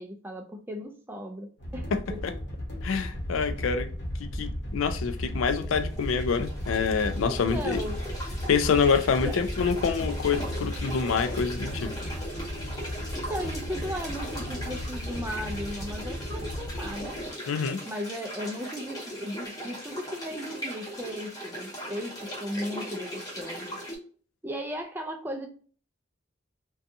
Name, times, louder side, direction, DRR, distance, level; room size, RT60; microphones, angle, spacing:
voice 1, 0.0-2.2 3.6-3.7 7.2-8.0 9.2-9.4 13.3-17.2 17.9-23.8 24.4-25.5, equal, 10° right, 0.3 m, -36 dB
sound 1, 1.6-17.3, equal, 60° left, 0.9 m, -35 dB
voice 2, 2.8-3.9 4.2-7.8 8.5-11.9 17.5-17.8, left 6 dB, 90° left, 0.4 m, -26 dB
sound 2, 5.3-24.0, equal, 20° left, 0.7 m, -39 dB
2.6 x 2.3 x 2.5 m
head